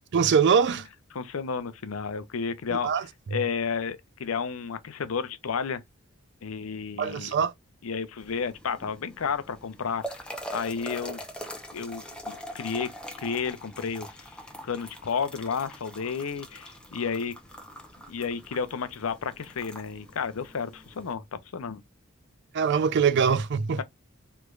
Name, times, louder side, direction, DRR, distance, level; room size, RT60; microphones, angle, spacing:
voice 1, 0.1-0.9 2.7-3.0 7.0-7.5 22.5-23.8, right 6 dB, 55° right, 0.4 m, -23 dB
voice 2, 1.1-3.1 3.3-5.8 6.4-7.3 7.8-10.3 10.5-11.2 11.7-12.9 13.2-14.2 14.6-17.3 18.1-21.2 21.5-21.8, left 6 dB, 75° left, 0.5 m, -32 dB
sound 1, 8.2-21.1, equal, 5° left, 0.7 m, -43 dB
3.3 x 3.1 x 2.3 m
head